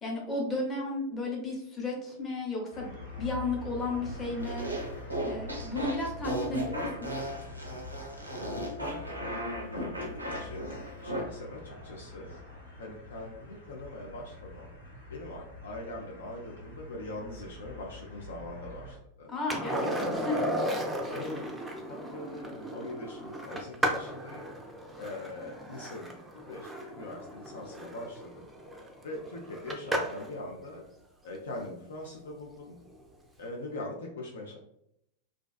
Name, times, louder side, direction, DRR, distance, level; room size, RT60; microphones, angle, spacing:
voice 1, 0.0-2.9 3.2-4.7 5.3-7.1 19.3-20.8, left 2 dB, 20° left, -2 dB, 0.8 m, -34 dB
sound 1, 2.7-19.0, left 2 dB, 80° left, 1.0 m, -45 dB
sound 2, 4.4-11.2, equal, 85° right, 0.4 m, -36 dB
voice 2, 8.8-10.7 11.0-12.3 12.8-14.7 15.1-19.3 21.1-21.4 21.9-24.5 25.0-28.5 29.0-30.8 31.2-32.8 33.4-34.6, left 2 dB, 65° left, -1 dB, 0.4 m, -42 dB
Skateboard, 19.5-30.3 32.9-33.0, equal, 10° right, 0.4 m, -35 dB
2.4 x 2.2 x 2.2 m, 0.77 s
figure-of-eight pair, 90°, 0 cm